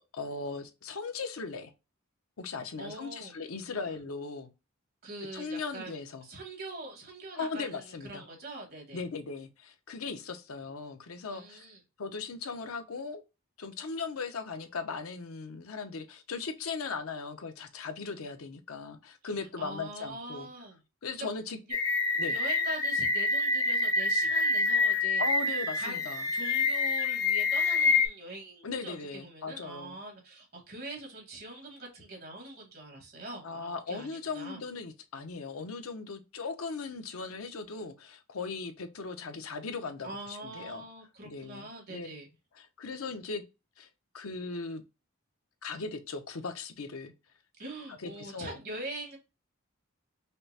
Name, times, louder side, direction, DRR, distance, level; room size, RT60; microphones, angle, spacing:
voice 1, 0.1-1.7 2.4-4.5 5.3-6.3 7.3-8.3 8.9-11.7 12.0-13.2 13.6-20.5 21.0-21.6 22.2-22.4 25.2-26.3 28.6-30.0 33.4-40.9 41.2-42.1 42.6-43.4 43.8-43.9 44.1-44.8 45.6-47.1 47.9-48.6, left 4 dB, 85° left, 0.7 m, -38 dB
voice 2, 2.8-3.3 5.0-5.9 6.2-9.0 11.3-11.8 19.6-20.8 21.1-21.3 22.3-25.2 25.8-26.0 26.3-34.6 40.0-42.3 47.6-49.2, right 2 dB, 50° right, 1.7 m, -43 dB
sound 1, 21.7-28.1, left 3 dB, 15° left, 0.5 m, -27 dB
5.2 x 2.0 x 2.7 m
head